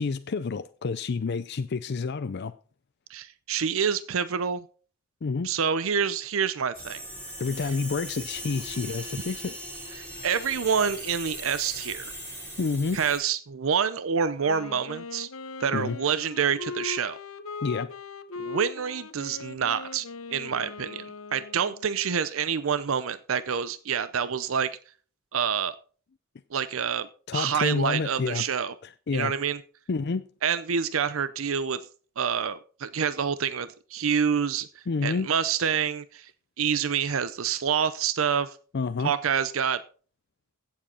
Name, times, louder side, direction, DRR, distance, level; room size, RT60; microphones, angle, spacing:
voice 1, 0.0-2.5 5.2-5.5 7.4-9.6 12.6-13.0 15.7-16.0 17.6-17.9 27.3-28.4 28.8-29.3 29.9-30.2 34.9-35.3 38.7-39.1, left 4 dB, 55° left, 0.5 m, -29 dB
voice 2, 3.1-4.6 5.4-7.0 10.0-12.1 12.9-15.3 15.6-17.2 18.4-20.1 20.3-21.0 21.3-24.7 25.3-25.8 26.5-28.7 29.1-29.6 30.4-31.8 32.2-36.3 36.6-38.6 39.0-39.8, right 7 dB, 75° right, 0.6 m, -27 dB
sound 1, 6.7-13.2, right 1 dB, 10° right, 3.4 m, -39 dB
Wind instrument woodwind instrument, 14.4-22.1, left 4 dB, 80° left, 0.9 m, -40 dB
16.0 x 7.5 x 4.3 m
head